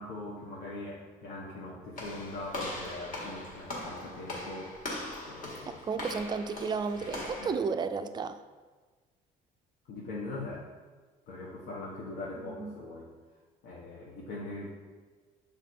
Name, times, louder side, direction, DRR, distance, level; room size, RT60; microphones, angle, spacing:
voice 1, 0.0-4.8 5.3-5.8 7.4-7.5 9.9-10.7 11.3-13.1 13.6-14.7, left 2 dB, 70° left, -5 dB, 1.2 m, -41 dB
Walk footsteps / Slam, 2.0-7.5, left 1 dB, 50° left, 1.9 m, -40 dB
voice 2, 5.9-8.4 12.4-12.7, right 5 dB, 25° right, 10 dB, 0.3 m, -33 dB
6.4 x 3.6 x 4.2 m, 1.4 s
cardioid pair, 110°, 17 cm